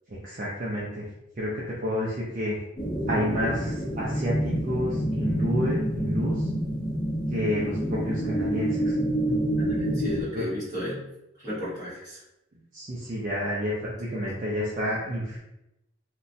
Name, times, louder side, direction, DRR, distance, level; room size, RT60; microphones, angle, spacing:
voice 1, 0.1-1.1 1.4-2.6 3.1-6.5 7.3-8.9 9.3-9.4 10.3-10.5 12.7-15.4, equal, 40° right, -6 dB, 0.4 m, -30 dB
sound 1, 2.8-10.2, right 1 dB, 20° left, 0.5 m, -27 dB
voice 2, 9.5-11.0 11.3-12.2, equal, 20° right, -11 dB, 1.3 m, -34 dB
2.9 x 2.2 x 2.6 m, 0.88 s
head